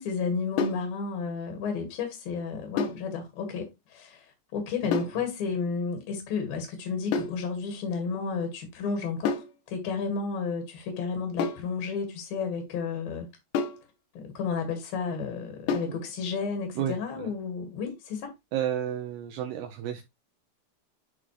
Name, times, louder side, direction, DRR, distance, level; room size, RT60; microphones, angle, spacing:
voice 1, 0.0-13.3 14.2-18.3, left 5 dB, 60° left, 3.1 m, -32 dB
sound 1, 0.6-0.9 2.8-3.1 4.9-5.2 7.1-7.4 9.3-9.6 11.4-11.7 13.5-13.9 15.7-16.0, left 5 dB, 80° left, 3.2 m, -29 dB
voice 2, 16.8-17.3 18.5-20.0, right 10 dB, 75° right, 2.6 m, -32 dB
11.0 x 3.9 x 3.1 m
omnidirectional pair, 5.1 m